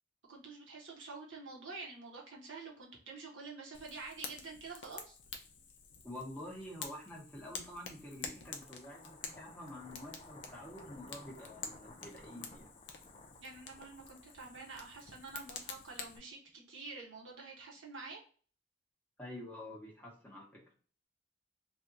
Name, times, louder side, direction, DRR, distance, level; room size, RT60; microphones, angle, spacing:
voice 1, 0.3-5.2 13.4-18.2, right 3 dB, 90° right, -2 dB, 1.2 m, -48 dB
Fire, 3.7-16.2, left 6 dB, 70° left, 0.6 m, -49 dB
voice 2, 6.0-12.7 19.2-20.6, left 1 dB, 10° left, -3 dB, 1.1 m, -48 dB
sound 1, 8.3-16.5, left 2 dB, 30° left, 0.4 m, -57 dB
3.4 x 2.5 x 2.7 m, 0.41 s
head